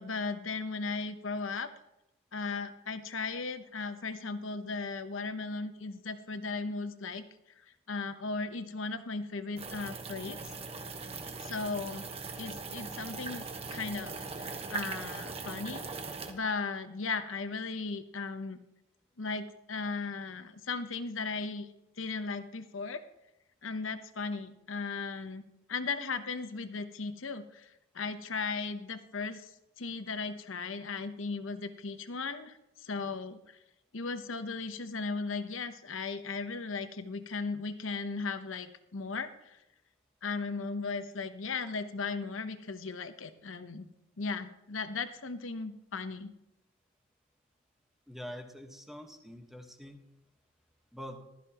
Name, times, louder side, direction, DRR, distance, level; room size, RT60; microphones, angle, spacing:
voice 1, 0.0-1.7 2.3-7.2 7.9-10.4 11.4-12.1 12.4-15.8 16.3-18.6 19.2-21.7 22.0-23.0 23.6-25.4 25.7-29.5 29.8-33.6 33.9-39.6 40.2-43.9 44.2-46.3, left 4 dB, 75° left, 10 dB, 0.9 m, -37 dB
sound 1, 9.6-16.3, right 4 dB, 30° right, 1.2 m, -40 dB
voice 2, 48.1-50.0 50.9-51.2, equal, ahead, 3 dB, 1.3 m, -45 dB
15.0 x 13.0 x 3.0 m, 0.89 s
head